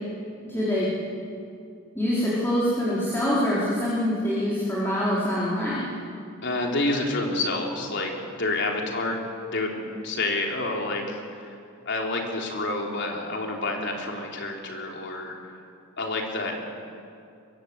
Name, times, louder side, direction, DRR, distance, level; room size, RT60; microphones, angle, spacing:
voice 1, 0.4-0.9 1.9-5.9, left 1 dB, 10° left, -8 dB, 4.7 m, -25 dB
voice 2, 6.4-9.2 9.5-11.5 11.9-15.4 16.0-16.6, left 2 dB, 60° left, 0 dB, 3.9 m, -28 dB
23.5 x 23.0 x 8.3 m, 2.5 s
head